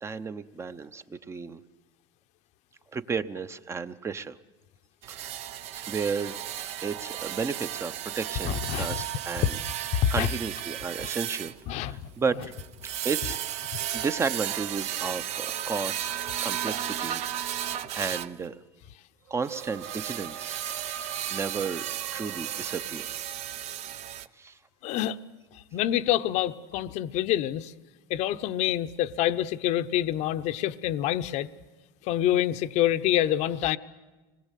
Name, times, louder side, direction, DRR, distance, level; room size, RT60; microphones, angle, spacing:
voice 1, 0.0-1.6 2.9-4.3 5.1-5.2 5.9-6.4 6.8-9.5 10.1-11.5 11.8-12.4 13.0-13.4 13.9-16.1 16.4-17.2 17.6-18.5 19.3-20.5 21.3-21.8 22.1-23.1 24.4-24.5, right 5 dB, 20° right, 12 dB, 0.9 m, -32 dB
sound 1, 5.0-18.4 19.5-24.3, right 11 dB, 50° right, 0.8 m, -34 dB
voice 2, 8.4-9.0 10.0-10.3 11.7-12.0 24.8-25.2 25.7-27.7 28.1-31.5 32.1-33.8, left 12 dB, 55° left, 12 dB, 0.9 m, -26 dB
sound 2, 19.3-23.4, right 7 dB, 80° right, 1.9 m, -44 dB
25.0 x 20.5 x 8.4 m, 1.2 s
supercardioid pair, 125°, 14 cm